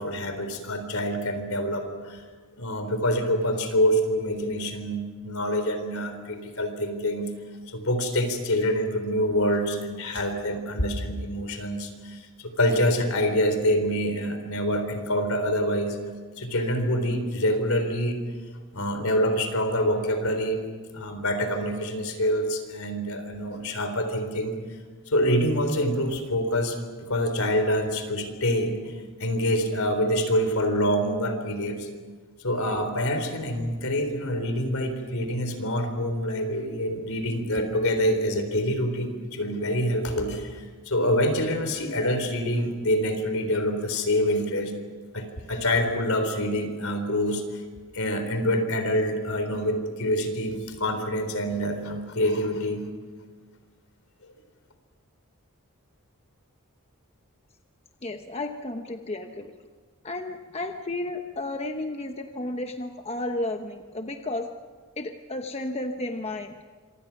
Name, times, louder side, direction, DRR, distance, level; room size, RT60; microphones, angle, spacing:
voice 1, 0.0-2.2 2.6-7.3 7.7-16.0 16.4-18.2 18.7-20.6 20.9-24.5 25.1-28.9 29.2-31.9 32.4-44.7 45.1-47.6 47.9-52.8, equal, 70° left, 7 dB, 4.0 m, -26 dB
voice 2, 58.0-59.5 60.0-64.5 65.0-66.5, left 2 dB, 30° left, 5 dB, 1.0 m, -32 dB
27.0 x 25.5 x 6.0 m, 1.5 s
head